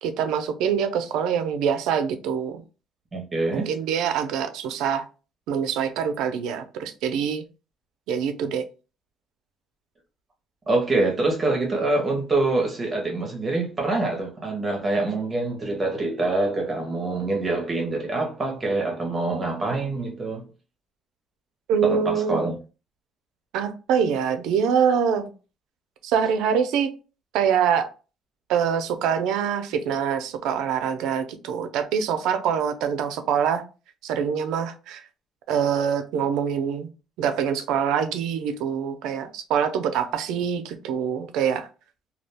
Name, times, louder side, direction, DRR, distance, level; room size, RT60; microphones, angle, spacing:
voice 1, 0.0-2.6 3.5-5.0 5.5-7.4 8.1-8.7 21.7-22.4 23.5-25.3 26.0-26.9 27.3-27.9 28.5-33.6 34.0-35.0 35.5-36.9 37.2-41.7, right 7 dB, 85° right, 0.4 m, -24 dB
voice 2, 3.1-3.7 10.7-20.5 21.8-22.6, right 2 dB, 20° right, 0.6 m, -25 dB
2.3 x 2.1 x 3.3 m
cardioid pair, 165°, 0 cm